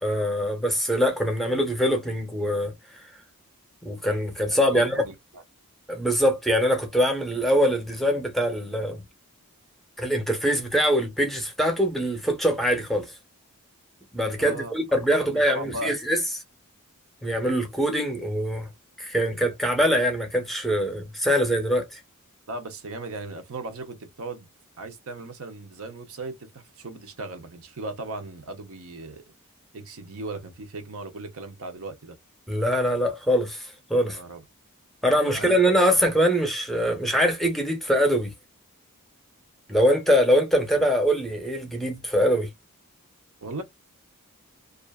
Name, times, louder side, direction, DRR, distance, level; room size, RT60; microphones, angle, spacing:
voice 1, 0.0-2.7 3.8-5.0 5.9-9.0 10.0-13.1 14.1-16.2 17.2-18.7 19.0-22.0 32.5-34.2 35.0-38.3 39.7-42.5, equal, ahead, 0.7 m, -23 dB
voice 2, 4.5-5.4 14.4-14.7 15.2-16.0 22.5-24.5 24.8-29.2 29.7-32.2 34.1-34.4 35.1-36.0 43.4-43.6, right 2 dB, 65° right, 0.7 m, -37 dB
2.5 x 2.4 x 2.2 m
head